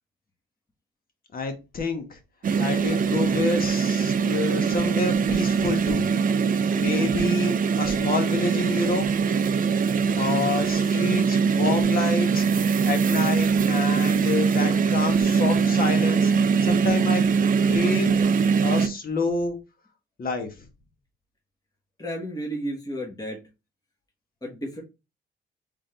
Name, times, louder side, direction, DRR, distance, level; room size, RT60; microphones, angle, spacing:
voice 1, 1.3-2.2 2.6-6.1 6.7-9.0 10.1-12.4 12.8-16.3 16.6-17.2 17.6-18.2 18.6-19.6 20.2-20.5, left 3 dB, 45° left, 1.3 m, -28 dB
sound 1, 2.4-18.9, right 5 dB, 45° right, 0.5 m, -22 dB
voice 2, 22.0-23.5 24.4-24.8, equal, 20° left, 1.4 m, -32 dB
3.8 x 3.7 x 3.3 m
cardioid pair, 90°, 20 cm